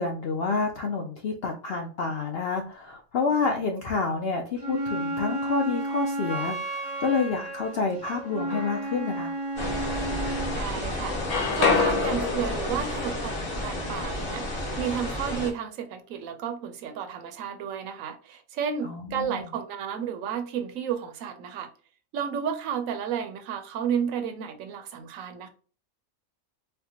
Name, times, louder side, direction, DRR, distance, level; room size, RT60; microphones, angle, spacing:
voice 1, 0.0-9.3 18.8-19.5, left 4 dB, 70° left, 0.6 m, -29 dB
Wind instrument woodwind instrument, 4.6-10.6, right 1 dB, 10° left, 0.8 m, -32 dB
sound 1, 8.2-9.0 9.6-10.6 10.9-14.8, left 4 dB, 90° left, 1.3 m, -29 dB
sound 2, 9.6-15.5, left 1 dB, 40° left, 1.2 m, -32 dB
voice 2, 10.5-11.2 11.5-21.7 22.1-25.5, right 7 dB, 70° right, 0.9 m, -32 dB
4.3 x 2.1 x 2.7 m
omnidirectional pair, 1.5 m